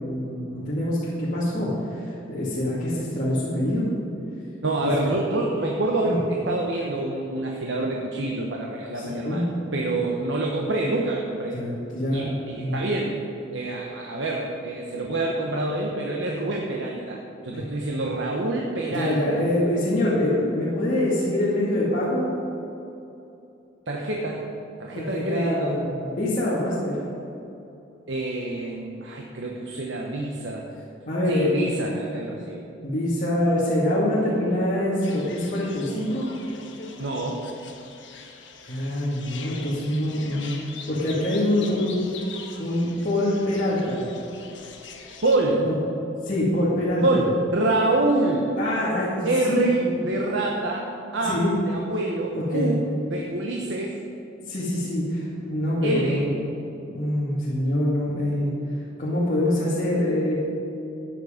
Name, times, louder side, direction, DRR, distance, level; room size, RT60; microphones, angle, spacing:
voice 1, 0.0-3.8 4.8-5.1 6.0-6.2 8.9-9.4 11.5-12.9 17.5-17.6 18.9-22.3 24.9-27.0 31.1-31.5 31.9-32.5 32.8-36.3 38.6-42.0 42.6-44.1 45.6-45.8 46.2-47.2 48.6-49.9 51.2-51.5 52.3-52.8 54.5-56.3 56.7-58.5 59.0-60.4, left 1 dB, 40° left, -8 dB, 2.1 m, -25 dB
voice 2, 4.6-9.4 9.7-11.6 12.1-13.2 13.5-19.4 23.9-24.4 24.8-25.8 28.1-30.7 31.3-32.6 37.0-37.4 45.2-45.6 47.0-48.5 49.2-50.9 51.1-51.4 51.6-52.8 53.1-54.0 55.8-56.2, right 2 dB, 70° right, -1 dB, 1.1 m, -26 dB
sound 1, 35.0-45.4, left 5 dB, 70° left, 1.3 m, -43 dB
13.0 x 9.1 x 5.1 m, 2.9 s
head